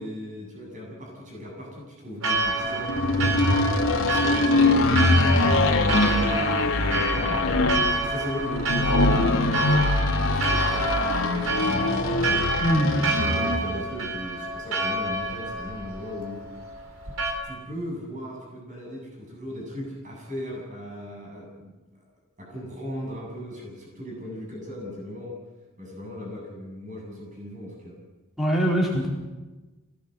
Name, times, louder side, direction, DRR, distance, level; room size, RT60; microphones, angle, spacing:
voice 1, 0.0-7.6 7.9-12.6 13.0-16.4 17.0-21.8 22.4-25.3 25.8-28.0, left 1 dB, 35° right, -1 dB, 8.0 m, -37 dB
Church bell, 2.2-17.3, right 2 dB, 70° right, 4.3 m, -29 dB
sound 1, 2.9-13.7, left 2 dB, 70° left, 2.9 m, -23 dB
voice 2, 12.6-13.0 28.4-29.1, equal, ahead, -3 dB, 4.3 m, -22 dB
24.5 x 18.0 x 8.1 m, 1.2 s
head